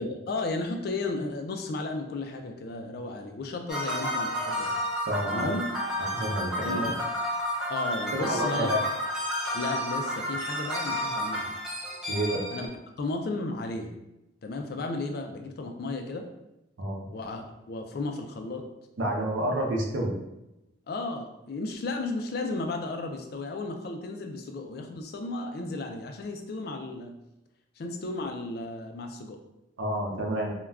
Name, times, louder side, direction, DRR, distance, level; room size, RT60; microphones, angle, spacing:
voice 1, 0.0-4.7 5.3-5.7 6.6-7.0 7.7-8.7 9.5-11.5 12.5-12.7 13.0-13.9 14.4-16.2 17.1-17.4 17.7-18.6 20.9-27.2 27.8-29.4, left 2 dB, 50° left, 4 dB, 0.3 m, -34 dB
sound 1, 3.7-12.7, equal, 5° right, 0.5 m, -31 dB
voice 2, 5.1-5.5 6.0-6.8 8.1-8.8 12.1-12.4 16.8-17.1 19.0-20.1 29.8-30.5, right 1 dB, 75° right, 0 dB, 0.6 m, -29 dB
2.3 x 2.2 x 3.3 m, 0.90 s
head